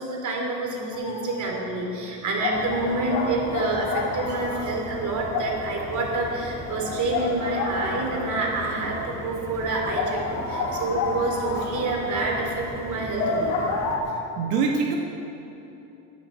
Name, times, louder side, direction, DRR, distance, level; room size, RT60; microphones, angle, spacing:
voice 1, 0.0-13.6, right 2 dB, 40° right, 0 dB, 3.3 m, -28 dB
sound 1, 0.9-1.4 1.7-1.8 2.4-8.8 9.1-9.2 9.5-9.6 9.9-14.0, left 4 dB, 70° left, 2.9 m, -30 dB
sound 2, 2.5-14.0, equal, 5° left, 1.5 m, -39 dB
voice 2, 14.1-15.0, right 5 dB, 85° right, 1 dB, 1.3 m, -25 dB
15.0 x 10.5 x 4.6 m, 2.9 s
supercardioid pair, 120°, 45 cm